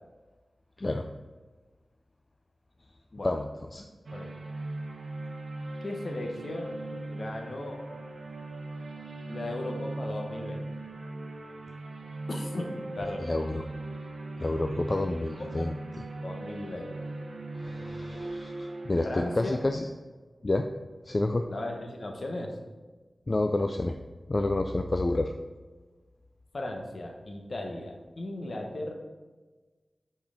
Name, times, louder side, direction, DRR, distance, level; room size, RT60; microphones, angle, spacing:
sound 1, 4.1-19.7, right 2 dB, 75° right, 0.8 m, -39 dB
voice 1, 5.8-6.7 7.1-7.8 9.3-10.7 12.3-13.3 14.9-15.0 15.4-15.7 16.2-17.0 19.0-19.6 21.5-22.6 26.5-28.9, left 1 dB, 55° left, 2 dB, 0.9 m, -36 dB
voice 2, 13.3-13.6 14.4-15.8 17.6-19.9 20.4-20.7 21.1-21.5 23.3-23.9 24.3-25.3, left 2 dB, 35° left, 5 dB, 0.3 m, -29 dB
5.9 x 4.4 x 4.9 m, 1.3 s
wide cardioid pair, 100°, 0 cm